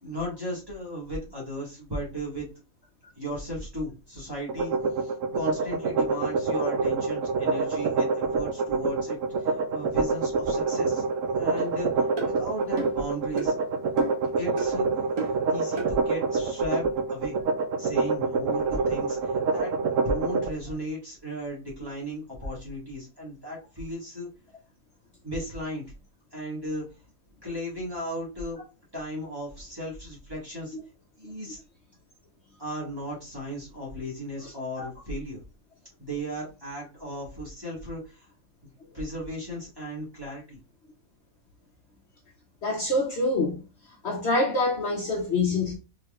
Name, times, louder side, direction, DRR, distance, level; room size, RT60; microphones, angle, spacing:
voice 1, 0.0-2.5 3.2-4.7 5.0-11.0 11.4-13.5 14.4-14.9 15.3-16.8 17.1-17.4 17.8-19.7 20.0-24.3 25.2-25.9 26.3-26.8 27.4-28.6 28.9-30.7 31.2-31.6 32.6-35.4 36.0-38.3 38.9-40.6, equal, 15° right, 1.8 m, -35 dB
sound 1, 4.5-20.5, right 4 dB, 65° right, 0.9 m, -26 dB
sound 2, 11.6-11.7 12.2-12.3 12.8-13.0 13.4-13.5 14.0-14.3 14.6-14.7 15.2-15.4 15.8-15.9, right 3 dB, 85° right, 1.7 m, -32 dB
voice 2, 34.4-34.9 42.6-43.7 44.0-45.7, left 2 dB, 55° left, 1.1 m, -26 dB
4.4 x 3.7 x 2.4 m
omnidirectional pair, 1.5 m